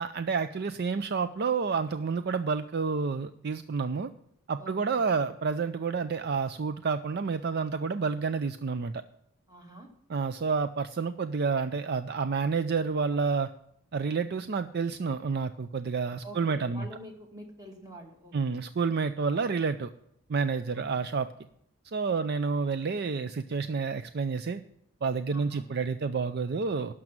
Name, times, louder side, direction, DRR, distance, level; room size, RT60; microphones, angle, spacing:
voice 1, 0.0-4.1 4.5-9.0 10.1-13.5 13.9-16.9 18.3-19.9 20.3-21.3 21.8-24.6 25.0-26.9, right 5 dB, 50° right, 11 dB, 0.4 m, -29 dB
voice 2, 4.6-5.0 9.5-9.9 16.2-18.6 25.3-25.7, right 1 dB, 20° right, 2 dB, 2.1 m, -47 dB
12.0 x 6.2 x 9.0 m, 0.73 s
head